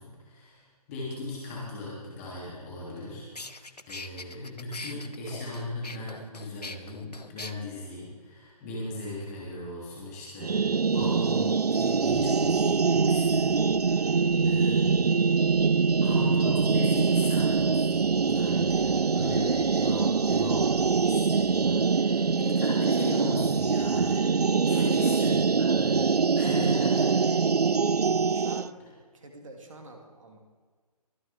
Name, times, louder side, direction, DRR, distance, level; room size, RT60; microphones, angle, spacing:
voice 1, 0.0-3.6 3.9-14.9 16.0-24.3 24.7-25.3 25.6-26.0 26.3-27.2, left 2 dB, 25° left, -5 dB, 3.2 m, -38 dB
sound 1, 2.9-3.0 3.4-7.5, left 3 dB, 80° left, 0.9 m, -42 dB
sound 2, 10.4-28.7, right 5 dB, 80° right, 0.5 m, -24 dB
Thunderstorm, 10.9-22.4, left 3 dB, 55° left, 3.6 m, -54 dB
voice 2, 24.7-25.1 27.0-27.4 28.3-30.4, right 2 dB, 55° right, 3 dB, 2.6 m, -46 dB
24.0 x 9.6 x 3.7 m, 1.5 s
figure-of-eight pair, 140°, 20 cm